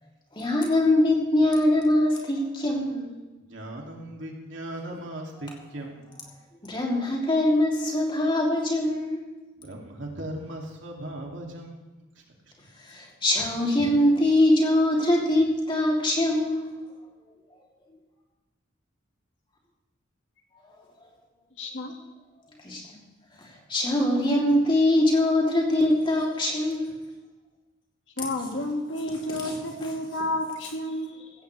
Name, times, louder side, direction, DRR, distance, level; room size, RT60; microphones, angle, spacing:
voice 1, 0.3-3.1 6.6-9.2 12.9-16.7 22.6-22.8 23.7-27.0 29.3-29.6, left 1 dB, 25° left, -2 dB, 3.1 m, -23 dB
voice 2, 3.4-6.2 9.6-12.0, right 1 dB, 75° right, 0 dB, 2.7 m, -38 dB
voice 3, 21.6-22.0 28.2-31.3, left 1 dB, 70° left, 3 dB, 2.0 m, -31 dB
16.0 x 14.0 x 3.4 m, 1.1 s
head